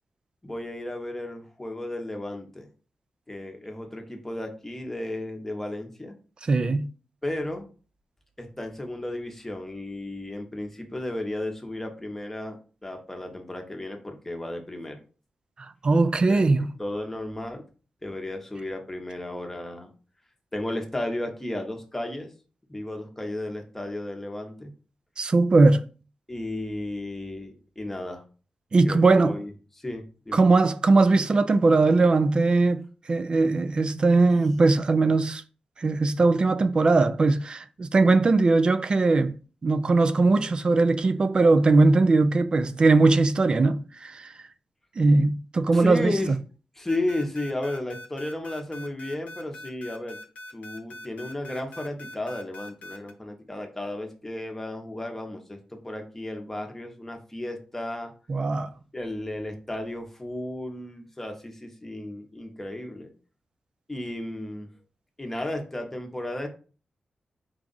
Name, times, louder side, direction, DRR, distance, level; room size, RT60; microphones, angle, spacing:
voice 1, 0.4-2.7 3.3-6.1 7.2-7.7 8.4-15.0 16.3-16.4 16.8-17.6 18.0-19.9 20.5-22.3 22.7-24.7 26.3-28.2 28.8-29.5 29.8-30.4 45.7-46.3 46.8-50.2 50.5-58.1 58.9-63.1 63.9-64.7 65.2-66.5, left 1 dB, 10° left, 0.9 m, -34 dB
voice 2, 6.4-6.9 15.6-16.7 25.2-25.8 28.7-29.4 30.3-35.4 35.8-39.4 39.6-44.3 45.0-46.1 58.3-58.7, right 3 dB, 40° right, 0.4 m, -20 dB
sound 1, 46.9-53.1, left 1 dB, 85° left, 0.8 m, -42 dB
4.6 x 2.4 x 3.9 m
wide cardioid pair, 110°, 2 cm